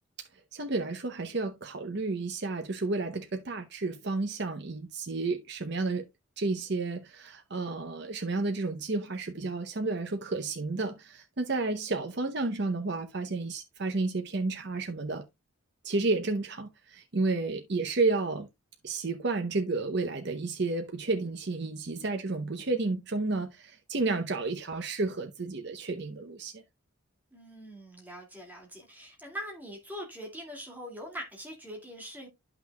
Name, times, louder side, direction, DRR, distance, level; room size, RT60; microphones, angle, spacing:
voice 1, 0.5-6.1 6.4-15.3 15.8-18.5 18.8-26.6, right 3 dB, 55° right, 0.8 m, -31 dB
voice 2, 27.3-32.3, equal, 10° right, 2.2 m, -42 dB
11.0 x 5.9 x 2.2 m
head